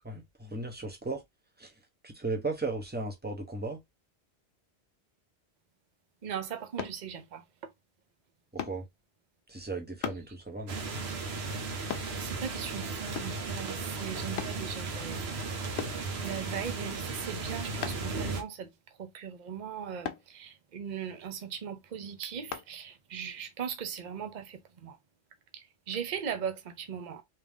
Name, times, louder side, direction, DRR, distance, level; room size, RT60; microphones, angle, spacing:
voice 1, 0.0-1.2 1.6-1.7 2.0-3.8 8.5-8.9 9.5-10.8, right 3 dB, 10° right, 0.9 m, -36 dB
voice 2, 6.2-7.7 11.9-15.4 16.2-18.7 19.0-25.0 25.5-27.2, right 8 dB, 45° right, 0.8 m, -39 dB
sound 1, 6.8-7.0 8.6-8.8 10.0-10.3 11.9-12.1 13.1-13.4 14.4-14.6 15.8-16.0 17.8-18.1 20.0-20.3 22.5-22.7 23.3-23.4, left 9 dB, 75° left, 0.9 m, -37 dB
sound 2, 10.7-18.4, right 3 dB, 70° right, 1.2 m, -36 dB
3.6 x 2.8 x 3.6 m
omnidirectional pair, 1.1 m